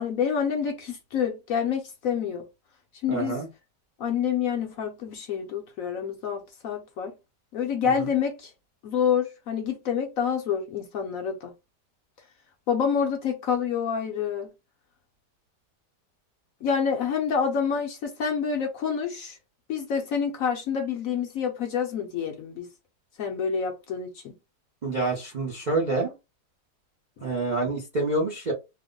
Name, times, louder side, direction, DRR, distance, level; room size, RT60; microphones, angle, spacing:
voice 1, 0.0-2.4 3.0-3.4 4.0-7.1 7.5-8.5 8.8-11.5 12.7-14.5 16.6-19.4 19.7-22.7 23.2-24.4, left 7 dB, 65° left, 0.9 m, -27 dB
voice 2, 3.1-3.5 8.0-8.1 24.8-26.1 27.2-28.5, right 3 dB, 50° right, 0.5 m, -27 dB
2.9 x 2.1 x 3.7 m
omnidirectional pair, 1.8 m